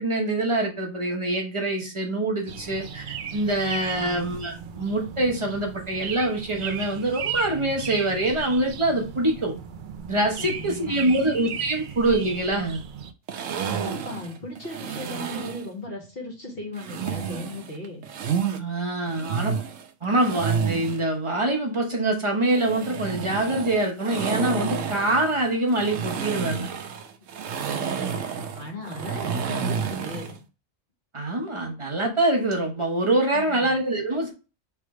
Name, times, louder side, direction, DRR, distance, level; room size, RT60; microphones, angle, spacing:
voice 1, 0.0-9.5 10.1-12.8 18.6-19.6 20.0-26.7 31.1-34.3, right 1 dB, 25° right, 1 dB, 1.0 m, -25 dB
sound 1, 2.5-13.1, right 7 dB, 60° right, 0.5 m, -36 dB
voice 2, 10.4-11.6 13.7-18.0 27.6-28.1 28.5-30.3 33.3-33.8, left 1 dB, 50° left, 0 dB, 1.6 m, -37 dB
sound 2, 13.3-15.7 16.8-18.6 19.0-21.0 22.5-30.4, right 6 dB, 85° right, 1.1 m, -30 dB
3.5 x 3.3 x 4.7 m, 0.32 s
omnidirectional pair, 1.3 m